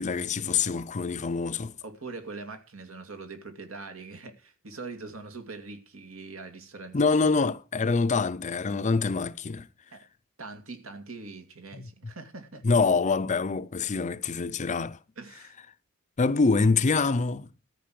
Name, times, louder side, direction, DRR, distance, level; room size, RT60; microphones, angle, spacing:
voice 1, 0.0-1.7 6.9-9.7 11.7-11.9 12.6-15.0 16.2-17.5, left 4 dB, 35° left, 0.5 m, -25 dB
voice 2, 1.8-7.0 9.9-10.0 10.4-12.6 15.2-15.5, right 3 dB, 75° right, 2.3 m, -42 dB
13.5 x 5.3 x 7.6 m
head